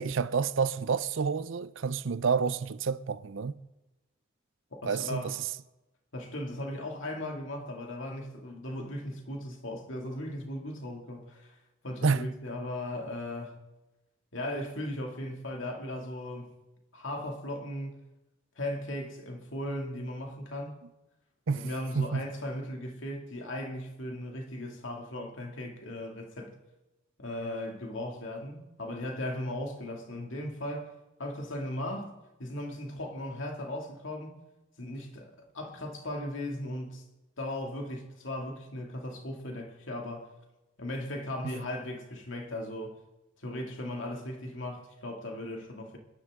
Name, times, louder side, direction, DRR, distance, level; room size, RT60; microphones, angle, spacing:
voice 1, 0.0-3.5 4.8-5.4 12.0-12.3 21.5-21.7 21.9-22.3 41.4-41.5, right 5 dB, 65° right, 0.5 m, -29 dB
voice 2, 4.7-5.3 6.1-11.6 11.8-13.6 14.3-16.6 16.9-18.0 18.6-20.8 21.5-26.6 27.2-30.9 31.2-34.4 34.8-37.0 37.4-40.3 40.8-43.0 43.4-46.0, left 1 dB, 70° left, 2.4 m, -37 dB
28.5 x 11.0 x 3.7 m
head